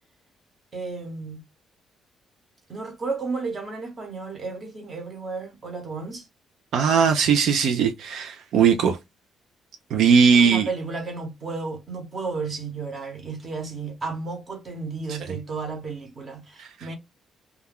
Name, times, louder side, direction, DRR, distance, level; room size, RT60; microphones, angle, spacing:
voice 1, 0.7-1.4 2.7-6.3 10.3-16.9, right 4 dB, 30° right, 0.9 m, -33 dB
voice 2, 6.7-9.0 9.9-10.7 15.1-15.2 16.6-16.9, right 6 dB, 70° right, 0.3 m, -19 dB
2.3 x 2.2 x 3.3 m
cardioid pair, 155°, 0 cm